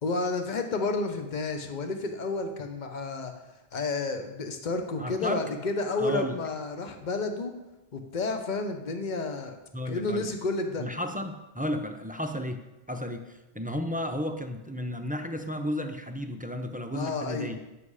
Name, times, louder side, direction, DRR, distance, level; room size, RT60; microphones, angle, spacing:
voice 1, 0.0-3.3 3.7-7.5 7.9-9.6 9.9-10.9 16.9-17.5, left 3 dB, 45° left, 5 dB, 1.1 m, -31 dB
voice 2, 5.0-5.4 6.0-6.4 9.7-10.3 10.8-17.6, left 1 dB, 10° right, 6 dB, 0.5 m, -33 dB
9.7 x 7.7 x 4.9 m, 0.99 s
omnidirectional pair, 1.1 m